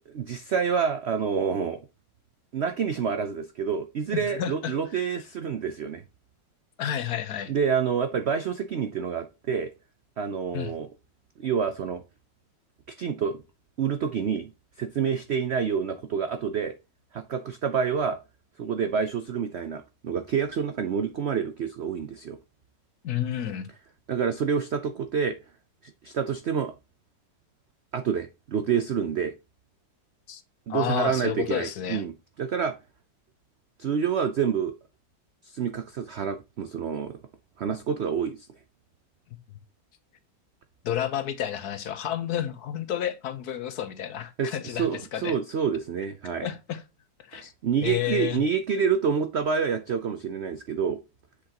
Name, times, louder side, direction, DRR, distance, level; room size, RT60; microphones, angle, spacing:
voice 1, 0.1-1.8 2.5-6.0 7.5-9.7 10.2-10.9 11.4-12.0 13.0-13.4 13.8-14.5 14.8-16.7 17.1-18.2 18.6-22.4 24.1-25.4 26.0-26.7 27.9-29.3 30.7-32.7 33.8-34.7 35.4-37.2 37.6-38.5 44.4-46.5 47.3-51.0, right 7 dB, 85° right, 0.5 m, -28 dB
voice 2, 4.3-4.7 6.8-7.5 10.5-10.7 23.0-23.7 30.3-30.4 30.7-32.0 40.8-45.4 46.4-46.8 47.3-47.5 47.8-48.4, left 10 dB, 65° left, 1.3 m, -30 dB
7.8 x 6.5 x 2.9 m
omnidirectional pair, 1.9 m